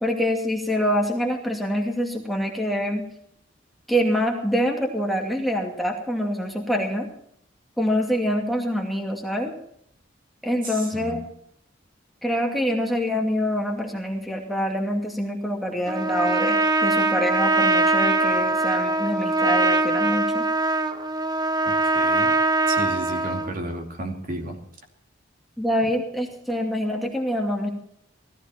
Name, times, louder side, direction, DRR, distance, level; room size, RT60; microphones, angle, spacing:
voice 1, 0.0-3.0 3.9-7.1 7.8-9.5 10.4-11.2 12.2-20.4 25.6-27.7, equal, ahead, 0 dB, 2.4 m, -25 dB
voice 2, 10.6-11.2 21.6-22.4 22.7-24.6, right 1 dB, 50° right, 3 dB, 2.6 m, -33 dB
Trumpet, 15.9-23.5, right 2 dB, 20° right, 1.0 m, -22 dB
18.0 x 14.5 x 4.4 m, 0.68 s
head